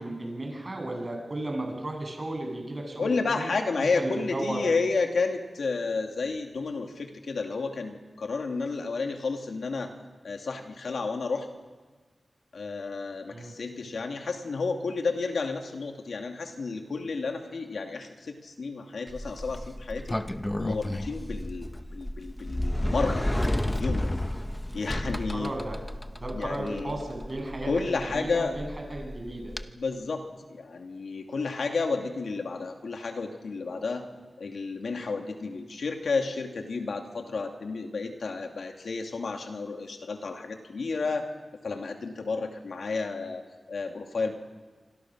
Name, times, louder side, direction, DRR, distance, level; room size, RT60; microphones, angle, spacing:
voice 1, 0.0-3.5 3.8-4.6 13.3-13.5 25.0-25.8 26.1-29.5, right 1 dB, 40° right, 2 dB, 7.8 m, -35 dB
voice 2, 3.0-9.9 10.2-11.5 12.5-20.2 20.6-23.3 23.7-24.1 24.7-25.5 26.3-27.0 27.6-28.6 29.8-30.2 30.5-34.0 34.4-41.3 41.6-43.4 43.7-44.3, left 4 dB, 85° left, 3 dB, 2.6 m, -31 dB
Sliding door, 19.1-29.6, left 1 dB, 15° left, 1.0 m, -32 dB
26.5 x 25.5 x 6.3 m, 1.3 s
wide cardioid pair, 70°, 0 cm